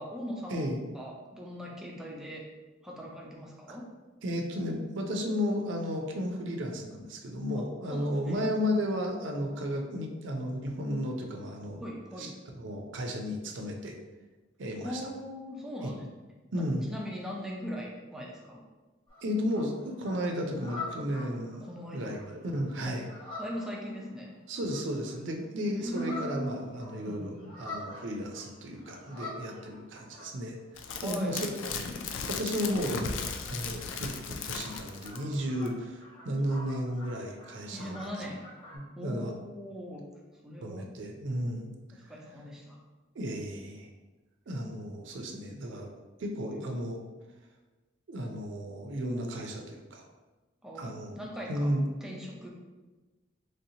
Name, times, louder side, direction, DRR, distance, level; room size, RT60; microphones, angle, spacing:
voice 1, 0.0-2.4 2.8-3.9 7.5-7.6 7.9-8.5 11.8-12.4 14.8-16.1 16.5-16.6 16.9-18.6 21.2-21.3 21.6-22.1 22.9-23.0 23.4-24.3 25.8-26.6 27.0-27.5 30.9-31.4 37.7-38.4 39.0-40.1 40.4-40.9 41.9-42.8 46.4-46.6 50.6-51.7 52.0-52.6, equal, 5° right, -3 dB, 0.5 m, -40 dB
voice 2, 4.2-11.8 12.2-13.9 14.6-15.0 15.8-15.9 16.5-16.8 19.2-21.6 21.9-23.1 24.5-30.6 31.0-31.5 32.3-38.1 38.7-39.3 40.6-41.7 43.2-43.9 44.5-45.9 46.2-47.0 48.1-50.0 50.8-51.2 51.5-51.8, equal, 75° right, 2 dB, 0.5 m, -33 dB
sound 1, 19.1-25.3 25.6-30.6 31.0-38.8, left 2 dB, 25° left, 1.0 m, -47 dB
sound 2, 30.8-35.3 35.7-35.8, left 5 dB, 80° left, 0.3 m, -36 dB
3.2 x 2.8 x 2.7 m, 1.2 s
head